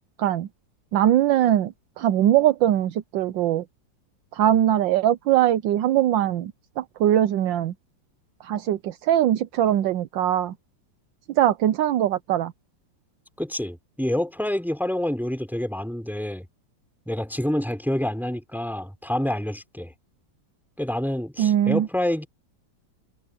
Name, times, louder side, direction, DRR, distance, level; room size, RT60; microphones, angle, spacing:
voice 1, 0.9-3.6 4.3-7.7 8.4-10.5 11.4-12.5 21.4-21.9, right 11 dB, 75° right, 1.4 m, -21 dB
voice 2, 13.4-16.5 17.1-19.9 20.8-22.3, left 1 dB, ahead, 4.0 m, -27 dB
omnidirectional pair, 2.1 m